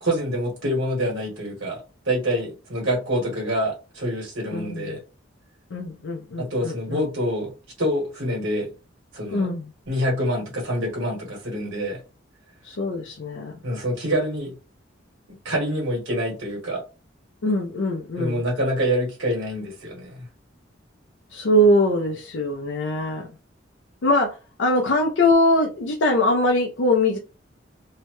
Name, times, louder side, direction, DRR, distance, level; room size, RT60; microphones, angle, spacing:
voice 1, 0.0-1.8 2.0-5.0 6.4-7.5 7.8-8.7 9.1-9.5 9.9-12.0 13.6-14.5 15.4-16.8 18.2-20.2, equal, 80° right, 1.3 m, -26 dB
voice 2, 4.5-5.0 5.7-7.1 9.3-9.7 12.6-13.6 17.4-18.4 21.3-23.3 24.0-27.2, left 1 dB, 70° left, 0.5 m, -22 dB
2.7 x 2.2 x 3.0 m
head